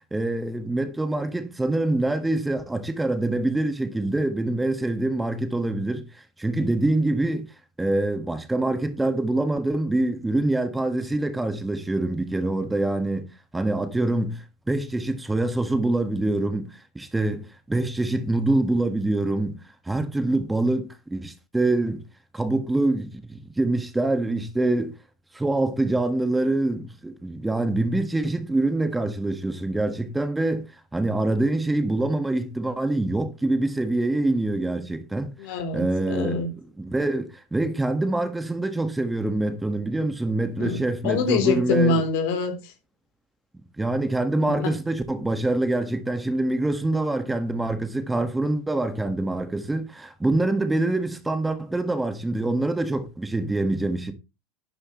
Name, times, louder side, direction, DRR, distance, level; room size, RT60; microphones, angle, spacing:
voice 1, 0.1-7.5 7.8-22.0 22.3-24.9 25.3-30.7 30.9-35.3 35.7-42.0 43.5-54.1, right 2 dB, 10° right, 1.7 m, -25 dB
voice 2, 35.4-35.8 36.1-36.5 40.6-40.8 41.0-42.7 44.4-44.7, left 4 dB, 65° left, 3.6 m, -24 dB
12.0 x 9.6 x 3.2 m
hypercardioid pair, 95°, 0 cm